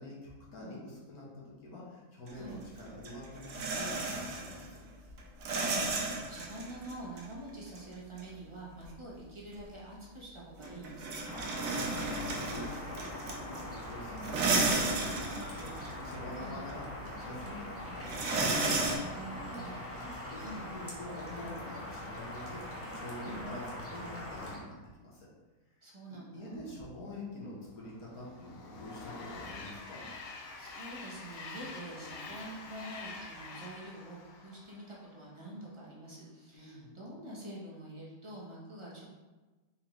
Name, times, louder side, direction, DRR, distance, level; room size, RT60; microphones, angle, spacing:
voice 1, 0.0-4.8 11.7-18.8 19.2-25.3 26.1-30.0 36.5-36.9, left 1 dB, 70° left, -5 dB, 1.6 m, -46 dB
sound 1, 2.3-2.4 2.8-4.8 5.1-7.3 7.8-7.9 8.2-8.3 8.8-8.9 9.5-9.6 10.6-13.9 14.2-16.4 16.7-16.8 18.0-19.0, right 3 dB, 65° right, 1.1 m, -33 dB
voice 2, 5.4-11.4 16.3-16.6 19.0-19.7 20.4-20.7 23.2-23.5 25.8-26.8 30.6-39.0, right 1 dB, 25° right, -6 dB, 0.8 m, -46 dB
sound 2, 11.2-24.6, left 1 dB, 15° left, 0.4 m, -43 dB
Train, 27.8-35.2, left 3 dB, 85° left, 0.5 m, -46 dB
4.3 x 3.7 x 3.0 m, 1.2 s
omnidirectional pair, 1.7 m